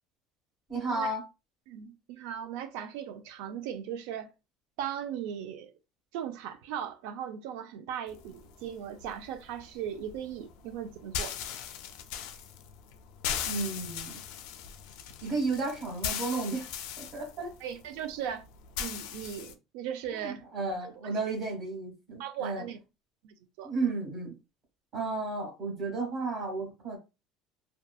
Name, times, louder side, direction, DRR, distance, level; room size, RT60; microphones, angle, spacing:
voice 1, 0.7-1.2 13.4-14.2 15.2-16.7 17.0-17.5 20.1-22.6 23.6-24.3 24.9-27.0, right 3 dB, 30° right, 1.4 m, -33 dB
voice 2, 1.7-4.3 4.8-5.7 6.1-11.3 17.6-18.4 18.8-20.4 20.8-20.9 22.2-22.8 23.2-23.7, right 9 dB, 75° right, 0.4 m, -38 dB
sound 1, 8.1-19.5, left 9 dB, 75° left, 0.4 m, -39 dB
2.8 x 2.2 x 2.3 m
cardioid pair, 175°, 0 cm